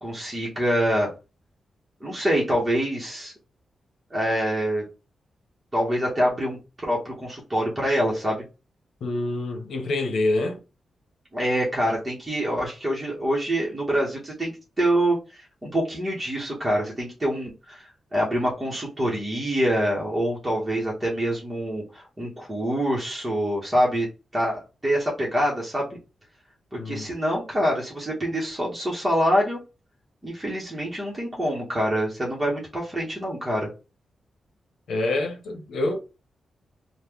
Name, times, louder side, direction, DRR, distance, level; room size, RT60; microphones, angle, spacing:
voice 1, 0.0-1.1 2.0-3.3 4.1-4.8 5.7-8.4 11.3-24.1 24.3-25.9 26.7-29.6 30.2-33.7, equal, 10° right, 0.9 m, -25 dB
voice 2, 9.0-10.6 26.8-27.1 34.9-36.0, left 2 dB, 75° left, 0.9 m, -26 dB
3.1 x 2.1 x 3.5 m
wide cardioid pair, 175°, 0 cm